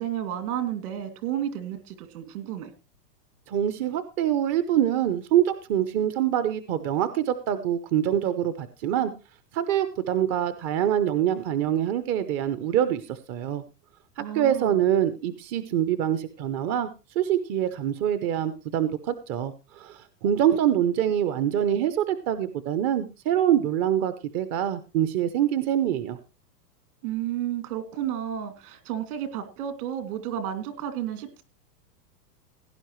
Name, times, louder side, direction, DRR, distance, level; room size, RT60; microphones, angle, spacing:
voice 1, 0.0-2.7 14.2-14.7 27.0-31.4, right 10 dB, 60° right, 9 dB, 2.7 m, -32 dB
voice 2, 3.5-9.1 9.5-13.6 14.2-16.9 17.2-26.2, right 10 dB, 30° right, 12 dB, 0.7 m, -25 dB
17.0 x 10.0 x 3.1 m, 0.29 s
supercardioid pair, 140°, 49 cm